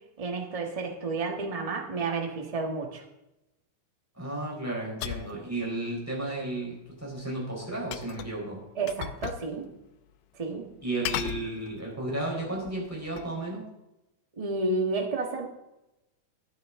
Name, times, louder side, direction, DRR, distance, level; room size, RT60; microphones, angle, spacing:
voice 1, 0.2-3.0 8.7-9.7 10.3-10.7 14.4-15.5, right 3 dB, 55° right, 2 dB, 0.4 m, -31 dB
voice 2, 4.1-8.6 10.8-13.7, right 2 dB, 5° right, -3 dB, 4.0 m, -33 dB
sound 1, 5.0-5.4 7.9-8.4 8.9-9.5 9.8-9.9 11.0-12.0 12.6-13.4, left 12 dB, 80° left, 1.8 m, -36 dB
13.0 x 10.5 x 3.7 m, 0.92 s
omnidirectional pair, 3.4 m